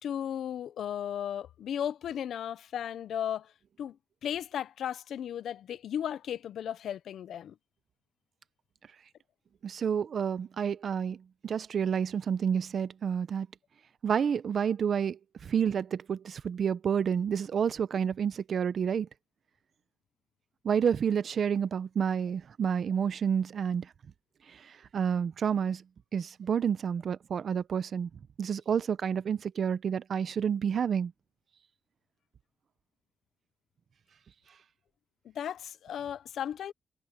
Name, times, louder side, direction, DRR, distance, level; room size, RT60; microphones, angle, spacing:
voice 1, 0.0-3.5 3.8-4.0 4.2-7.5 35.2-36.7, left 9 dB, 85° left, 0.6 m, -35 dB
voice 2, 9.6-13.5 14.0-19.1 20.6-23.9 24.5-25.8 26.1-28.1 28.4-31.1, right 7 dB, 60° right, 0.7 m, -29 dB
cardioid pair, 115°, 0 cm